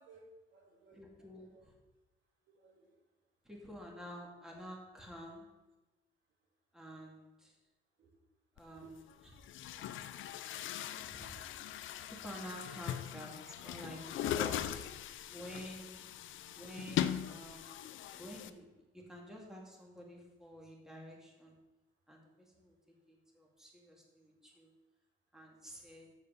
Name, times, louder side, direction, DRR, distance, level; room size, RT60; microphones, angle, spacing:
voice 1, 0.0-1.7 2.5-3.0 8.0-8.2 8.7-8.9 12.5-12.6, right 4 dB, 70° right, -1 dB, 2.5 m, -61 dB
voice 2, 0.9-1.7 3.4-5.6 6.7-7.6 8.6-9.0 9.4-9.8 11.0-11.4 12.1-14.8 15.3-16.0 16.5-17.7 18.1-18.7 18.9-21.6 22.1-24.7 25.3-26.1, equal, 5° right, -2 dB, 2.3 m, -50 dB
Chatter / Gurgling / Tap, 8.6-8.7 9.4-18.5, left 11 dB, 80° left, 0.6 m, -40 dB
7.2 x 6.5 x 6.9 m, 1.1 s
cardioid pair, 90°, 20 cm